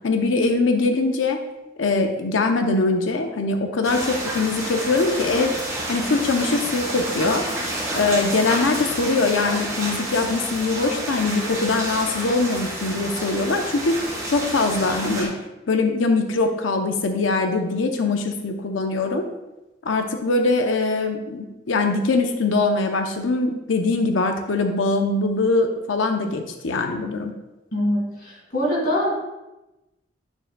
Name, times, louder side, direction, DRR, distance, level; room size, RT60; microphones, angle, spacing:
voice 1, 0.0-1.4 1.8-5.5 5.9-7.4 7.9-15.3 15.7-19.3 19.8-27.3, left 3 dB, 85° left, 5 dB, 0.6 m, -22 dB
sound 1, 3.8-15.2, right 1 dB, 15° right, 2.5 m, -29 dB
voice 2, 27.7-29.2, equal, 50° left, -2 dB, 2.1 m, -23 dB
8.8 x 6.5 x 2.2 m, 0.99 s
head